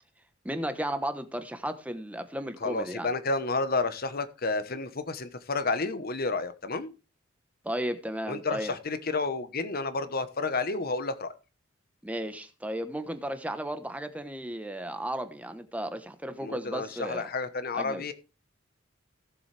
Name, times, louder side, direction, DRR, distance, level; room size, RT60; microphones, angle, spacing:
voice 1, 0.4-3.1 7.6-8.7 12.0-17.2 17.7-18.0, right 1 dB, 5° right, 1.1 m, -34 dB
voice 2, 2.6-6.9 8.3-11.3 16.4-18.1, left 3 dB, 50° left, 1.1 m, -31 dB
17.5 x 7.1 x 3.4 m
head